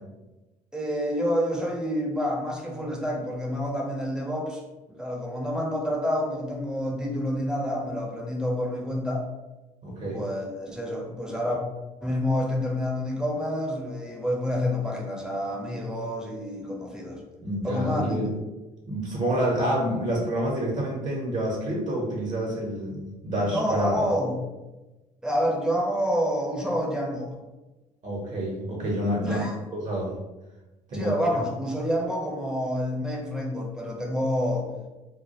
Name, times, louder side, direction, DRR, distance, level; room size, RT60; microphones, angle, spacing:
voice 1, 0.7-4.6 4.9-9.3 10.1-11.6 12.0-17.2 17.6-18.3 23.5-24.4 25.2-27.3 29.2-29.5 30.9-34.7, equal, 5° right, -1 dB, 0.6 m, -28 dB
voice 2, 9.8-10.2 17.4-18.3 18.9-24.0 28.0-29.4 29.7-30.1 30.9-31.1, right 1 dB, 40° right, -3 dB, 0.7 m, -28 dB
2.2 x 2.0 x 2.7 m, 1.1 s
hypercardioid pair, 55°, 20 cm